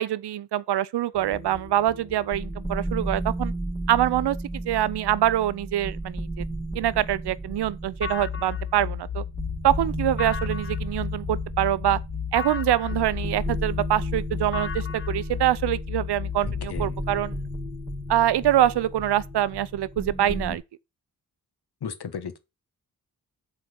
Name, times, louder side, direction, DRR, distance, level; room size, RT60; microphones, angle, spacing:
voice 1, 0.0-3.5 3.9-6.4 6.7-9.2 9.6-12.0 12.3-17.4 18.1-20.6, right 12 dB, 90° right, 0.6 m, -25 dB
sound 1, 1.1-20.6, right 1 dB, 5° left, 2.2 m, -34 dB
sound 2, 8.0-16.7, left 8 dB, 35° left, 0.5 m, -33 dB
voice 2, 16.4-17.0 21.8-22.4, left 7 dB, 75° left, 1.4 m, -35 dB
7.8 x 4.3 x 6.9 m
cardioid pair, 65°, 39 cm